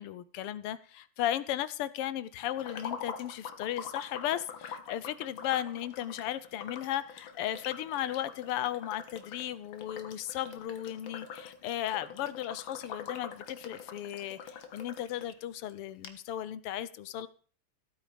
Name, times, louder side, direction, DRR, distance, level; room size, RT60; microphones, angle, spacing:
voice 1, 0.0-17.3, left 12 dB, 90° left, 16 dB, 1.8 m, -35 dB
sound 1, 2.6-15.3 15.7-15.8 16.0-16.1, left 7 dB, 65° left, 2.0 m, -45 dB
15.5 x 9.0 x 5.1 m, 0.41 s
omnidirectional pair, 2.4 m